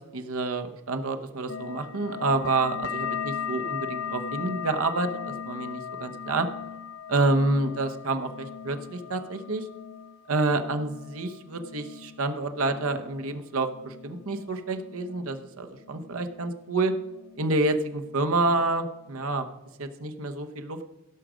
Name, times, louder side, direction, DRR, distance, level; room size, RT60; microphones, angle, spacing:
voice 1, 0.0-6.5 7.1-9.7 10.3-16.9 17.4-19.5 19.8-20.8, right 2 dB, 85° right, 6 dB, 0.9 m, -28 dB
sound 1, 1.5-16.7 16.9-17.7 18.0-18.7 19.1-19.5, left 7 dB, 65° left, 0.6 m, -39 dB
16.5 x 6.2 x 5.0 m, 1.0 s
head